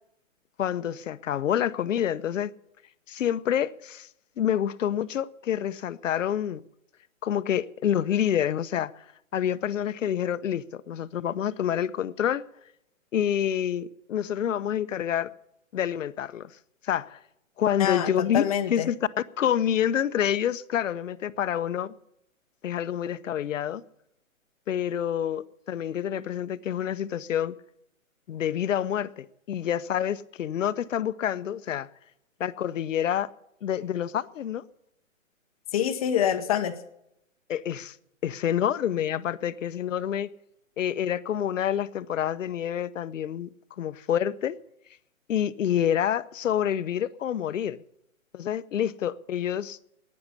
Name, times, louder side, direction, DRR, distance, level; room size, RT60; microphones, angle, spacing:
voice 1, 0.6-2.5 3.1-4.1 4.4-6.6 7.2-8.9 9.3-12.5 13.1-15.3 15.7-16.5 16.8-17.2 17.6-19.1 19.4-21.9 22.6-23.8 24.7-27.6 28.3-31.9 32.4-33.3 33.6-34.7 37.5-38.0 38.2-40.3 40.8-43.5 43.8-44.6 45.3-47.8 48.3-49.8, left 10 dB, 65° left, 0.8 m, -27 dB
voice 2, 17.8-18.9 35.7-36.7, left 9 dB, 25° left, 0.8 m, -26 dB
11.5 x 9.7 x 9.6 m
hypercardioid pair, 150°, 41 cm